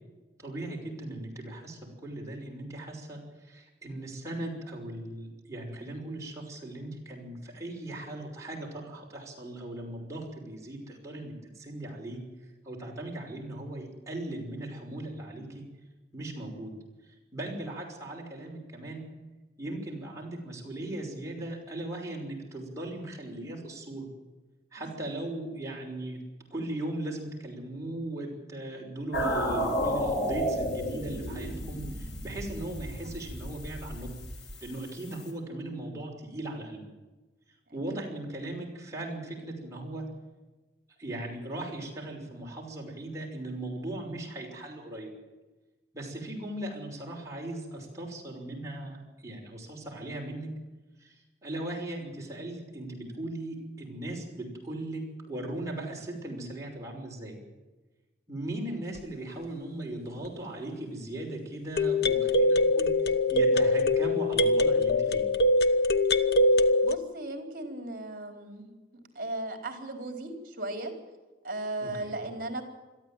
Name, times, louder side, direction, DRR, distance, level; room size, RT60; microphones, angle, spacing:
voice 1, 0.4-12.2 12.6-15.6 16.1-16.7 17.1-19.0 19.6-24.1 24.7-26.2 26.5-34.1 34.6-36.8 37.7-40.0 41.0-45.1 45.9-50.5 51.0-57.4 58.3-62.9 63.3-65.2 71.8-72.2, right 1 dB, 15° right, -2 dB, 5.9 m, -38 dB
sound 1, 29.1-35.3, equal, 80° left, 5.2 m, -32 dB
sound 2, 59.0-59.1 61.8-67.0, left 2 dB, 60° left, 1.0 m, -23 dB
voice 2, 66.8-68.7 69.1-70.9 71.4-72.6, right 2 dB, 50° right, 5 dB, 4.2 m, -36 dB
22.0 x 14.0 x 9.1 m, 1.2 s
head